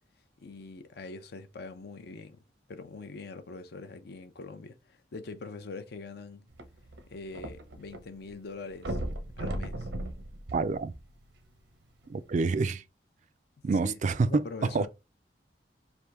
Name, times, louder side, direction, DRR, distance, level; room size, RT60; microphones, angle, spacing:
voice 1, 0.4-2.4 2.7-6.5 7.1-9.0 9.4-9.9 13.8-14.0 14.3-14.9, left 3 dB, 60° left, 0.5 m, -43 dB
sound 1, 6.5-8.0 8.3-8.4 8.8-11.4 12.1-12.2, right 1 dB, 85° right, 0.8 m, -36 dB
voice 2, 10.5-10.9 12.1-12.8 13.6-14.9, right 4 dB, 45° right, 0.3 m, -27 dB
3.4 x 2.6 x 4.5 m
head